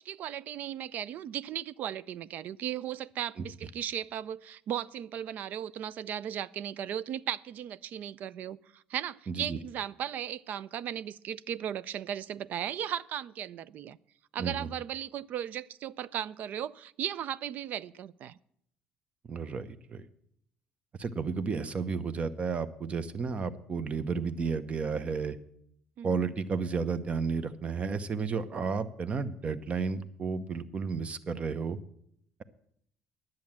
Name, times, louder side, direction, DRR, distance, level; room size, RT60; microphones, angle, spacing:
voice 1, 0.0-14.0 14.3-18.4 26.0-26.2, right 10 dB, 60° right, 19 dB, 0.4 m, -36 dB
voice 2, 9.3-9.6 14.4-14.7 19.3-20.0 21.0-25.4 26.0-31.8, right 5 dB, 40° right, 13 dB, 0.9 m, -32 dB
10.5 x 7.7 x 7.3 m, 0.71 s
supercardioid pair, 70°, 3 cm